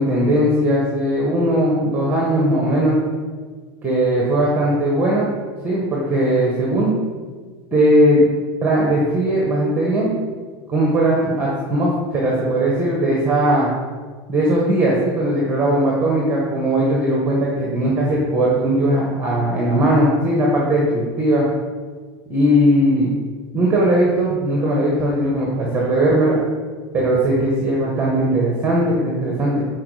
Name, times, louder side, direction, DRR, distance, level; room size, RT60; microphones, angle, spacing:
voice 1, 0.0-3.0 3.8-5.3 5.6-6.9 7.7-8.2 8.6-10.1 10.7-13.7 14.3-21.4 22.3-23.1 23.5-26.4 26.9-29.6, right 1 dB, 15° right, -3 dB, 1.0 m, -18 dB
6.0 x 4.6 x 4.8 m, 1.5 s
supercardioid pair, 160°, 14 cm